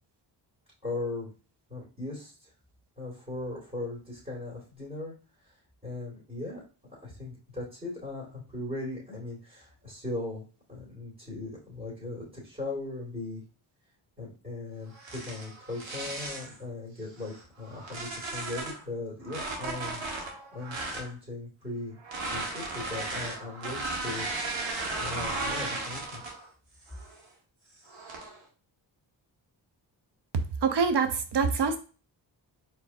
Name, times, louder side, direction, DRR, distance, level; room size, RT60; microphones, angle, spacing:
voice 1, 0.8-1.3 1.7-2.5 3.0-5.1 5.4-5.5 5.8-6.6 7.0-10.4 10.7-13.4 14.2-20.0 20.5-22.0 22.3-24.3 25.0-26.2, left 2 dB, 20° right, -5 dB, 2.3 m, -38 dB
sound 1, 14.9-16.6 17.2-18.8 19.2-21.1 22.0-26.5 26.9-27.2 27.9-28.4, right 2 dB, 80° right, 1.5 m, -35 dB
voice 2, 30.6-31.8, right 5 dB, 65° right, 9 dB, 0.8 m, -25 dB
4.5 x 3.5 x 2.6 m, 0.36 s
cardioid pair, 65°, 45 cm